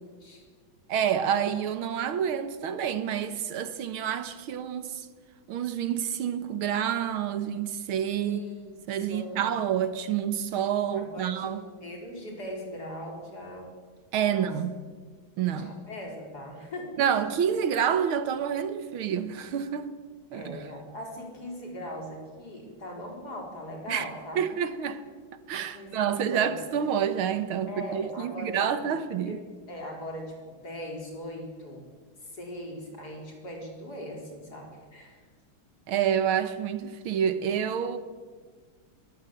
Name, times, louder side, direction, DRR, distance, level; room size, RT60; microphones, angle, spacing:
voice 1, 0.9-5.1 5.5-8.4 8.9-11.6 14.1-14.7 15.4-15.7 17.0-19.9 20.3-20.6 23.9-24.1 24.4-25.0 25.5-29.4 35.9-38.0, right 8 dB, 80° right, 2.0 m, -28 dB
voice 2, 8.2-8.7 8.9-9.5 10.9-13.7 14.2-14.5 15.5-16.9 20.3-24.4 25.7-26.5 27.7-28.9 29.2-31.8 32.2-35.2, equal, 45° left, 5.0 m, -40 dB
21.0 x 17.0 x 7.8 m
omnidirectional pair, 2.3 m